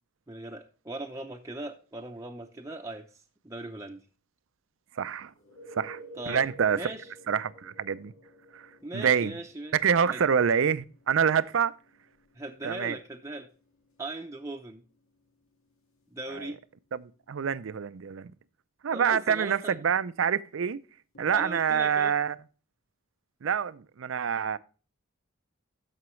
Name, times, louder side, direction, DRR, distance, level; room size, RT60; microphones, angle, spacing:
voice 1, 0.3-3.1 3.4-4.0 6.1-6.4 6.7-7.1 8.8-9.7 10.1-10.2 12.4-13.5 14.0-14.8 16.1-16.6 18.9-19.8 21.3-22.2, right 2 dB, 15° right, 0.6 m, -39 dB
voice 2, 5.0-5.3 5.7-6.0 6.3-6.9 7.3-8.1 8.5-8.7 8.9-9.4 9.7-11.7 12.6-13.0 16.3-16.5 16.9-18.3 18.8-20.8 21.2-22.4 23.4-24.6, right 7 dB, 65° right, 0.5 m, -26 dB
sound 1, 5.3-16.9 21.2-21.3, right 1 dB, 85° left, 1.9 m, -53 dB
13.0 x 5.8 x 3.1 m
head